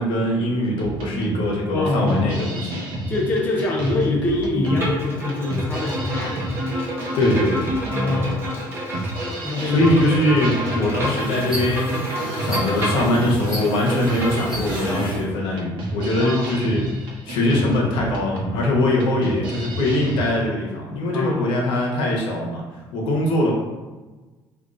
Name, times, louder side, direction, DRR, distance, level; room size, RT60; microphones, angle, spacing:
voice 1, 0.0-2.8 7.1-7.7 9.6-12.0 12.4-16.9 17.2-22.6 22.9-23.5, left 1 dB, 80° left, -2 dB, 0.8 m, -22 dB
sound 1, 0.8-20.3, right 1 dB, 75° right, 0.6 m, -31 dB
voice 2, 1.7-2.5 3.1-6.4 7.9-8.6 9.4-9.9 10.5-10.7 16.2-16.5 21.1-21.5, left 2 dB, 20° left, -2 dB, 0.4 m, -24 dB
Bowed string instrument, 4.6-15.2, equal, 25° right, 0.7 m, -29 dB
sound 2, 11.2-15.2, equal, 5° right, 1.1 m, -32 dB
3.6 x 2.3 x 2.5 m, 1.2 s
cardioid pair, 160°, 9 cm